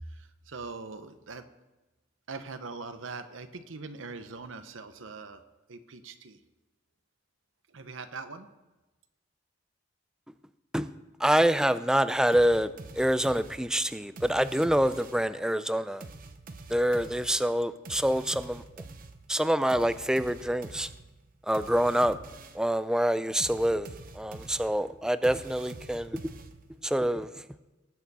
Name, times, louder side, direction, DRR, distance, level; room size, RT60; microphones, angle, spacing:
voice 1, 0.0-1.5 2.3-5.4 5.7-6.4 7.7-8.5, right 4 dB, 85° right, 9 dB, 0.9 m, -42 dB
voice 2, 11.2-16.0 16.7-18.6 19.3-20.9 21.5-22.2 22.5-23.9 24.1-26.2 26.8-27.3, equal, 5° right, 13 dB, 0.4 m, -26 dB
sound 1, 12.3-15.4 16.0-22.7 23.4-26.9, right 3 dB, 45° right, 0.7 m, -46 dB
19.0 x 6.8 x 4.2 m, 1.1 s
head